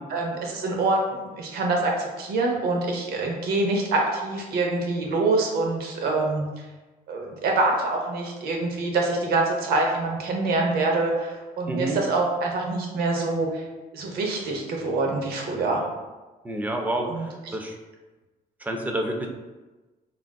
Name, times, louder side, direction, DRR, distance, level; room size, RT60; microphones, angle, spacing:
voice 1, 0.1-6.4 7.1-13.6 13.9-15.8 17.0-17.5, right 2 dB, 85° right, 0 dB, 0.6 m, -25 dB
voice 2, 11.7-12.0 16.4-17.8 18.6-19.3, right 1 dB, 10° right, 2 dB, 0.3 m, -29 dB
3.5 x 2.4 x 2.2 m, 1.2 s
cardioid pair, 130°, 16 cm